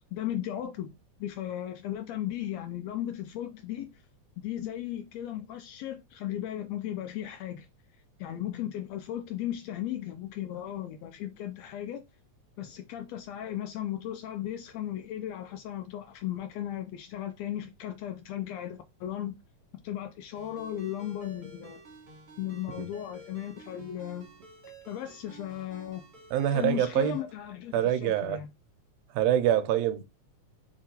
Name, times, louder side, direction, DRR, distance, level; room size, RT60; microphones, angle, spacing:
voice 1, 0.1-0.9 1.2-3.9 4.4-7.7 8.2-12.0 12.6-19.3 19.8-21.8 22.4-24.3 24.9-26.0 26.5-28.5, left 12 dB, 80° left, 1.5 m, -36 dB
Ringtone, 20.3-27.2, right 2 dB, 40° right, 0.9 m, -51 dB
voice 2, 26.3-27.2 27.7-28.4 29.1-30.1, right 11 dB, 80° right, 1.6 m, -25 dB
5.8 x 2.9 x 2.8 m
omnidirectional pair, 3.5 m